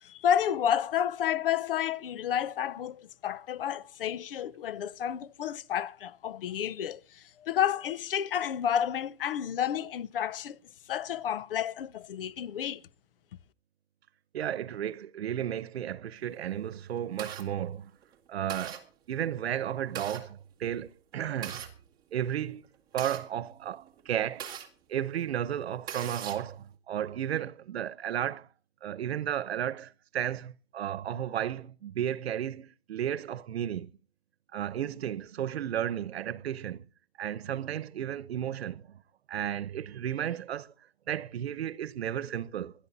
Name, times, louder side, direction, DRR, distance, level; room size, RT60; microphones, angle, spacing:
voice 1, 0.0-10.6 10.9-12.8, left 9 dB, 60° left, 0.8 m, -30 dB
voice 2, 14.3-17.9 18.3-21.7 22.1-22.6 22.9-24.5 24.9-28.5 28.8-33.9 34.5-36.8 37.2-39.0 39.3-40.7 41.1-42.7, right 10 dB, 80° right, 1.0 m, -33 dB
sound 1, 16.5-17.4 18.0-18.1 18.5-18.8 19.6-20.2 21.1-21.7 22.5-24.7 25.2-25.3 25.6-26.5, right 8 dB, 15° right, 1.7 m, -40 dB
17.0 x 12.0 x 4.1 m
hypercardioid pair, 170°, 31 cm